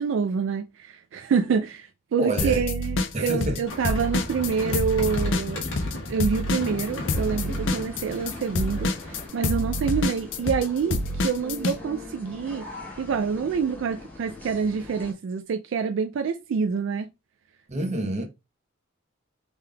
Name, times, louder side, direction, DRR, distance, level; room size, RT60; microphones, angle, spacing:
voice 1, 0.0-12.6 13.0-17.1, right 6 dB, 65° right, 0.3 m, -27 dB
voice 2, 2.2-2.6 3.1-3.6 17.7-18.2, right 1 dB, 35° right, 0.8 m, -27 dB
sound 1, 2.4-3.6 3.8-11.8, left 2 dB, 65° left, 0.5 m, -27 dB
sound 2, 3.7-9.3, left 1 dB, 85° left, 1.1 m, -36 dB
sound 3, 6.5-15.1, left 2 dB, 10° left, 0.9 m, -41 dB
3.5 x 3.2 x 2.2 m
head